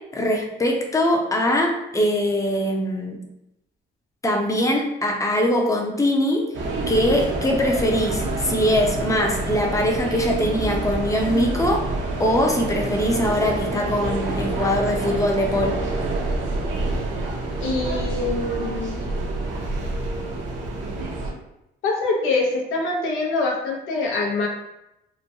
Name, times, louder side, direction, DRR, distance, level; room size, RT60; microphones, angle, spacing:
voice 1, 0.0-3.2 4.2-6.5 6.9-15.8, left 1 dB, 15° left, 1 dB, 0.6 m, -22 dB
sound 1, 6.5-21.3, right 2 dB, 70° right, 0.6 m, -27 dB
voice 2, 17.6-19.0 21.8-24.5, left 3 dB, 85° left, -1 dB, 0.7 m, -24 dB
3.0 x 2.2 x 2.6 m, 0.88 s
cardioid pair, 90°, 20 cm